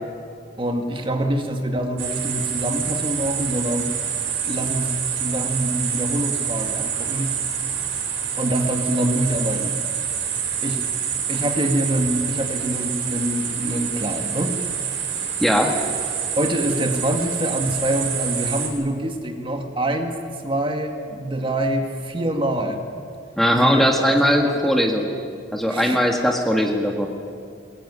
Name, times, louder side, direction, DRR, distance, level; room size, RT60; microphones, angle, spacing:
voice 1, 0.6-3.9 4.4-7.3 8.4-9.7 10.6-10.8 11.3-14.5 16.4-20.1 20.4-22.8 23.5-24.7 25.7-26.0, right 1 dB, 25° right, 4 dB, 2.0 m, -25 dB
sound 1, 2.0-18.7, right 7 dB, 70° right, 4.5 m, -27 dB
voice 2, 15.4-15.7 23.4-25.1 25.5-27.1, equal, ahead, 1 dB, 1.7 m, -19 dB
22.0 x 20.5 x 9.8 m, 2.3 s
head